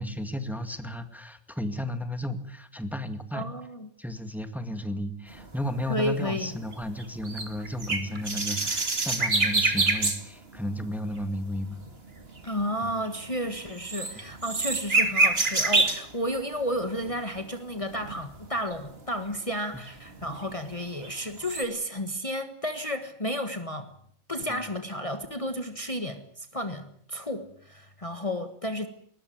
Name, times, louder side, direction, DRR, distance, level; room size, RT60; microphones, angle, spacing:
voice 1, 0.0-3.5 4.0-11.8 12.8-12.9 24.5-24.6, left 1 dB, ahead, 8 dB, 2.0 m, -33 dB
voice 2, 3.3-3.9 5.9-6.5 12.4-23.9 24.3-28.9, equal, 25° left, 7 dB, 1.7 m, -32 dB
sound 1, 5.3-10.2 10.5-10.8 11.1-16.1 16.6-17.3 17.8-19.0 19.3-19.4 19.9-21.1 21.4-21.6, right 3 dB, 50° right, 2.8 m, -28 dB
21.0 x 20.0 x 9.4 m, 0.62 s
omnidirectional pair, 1.3 m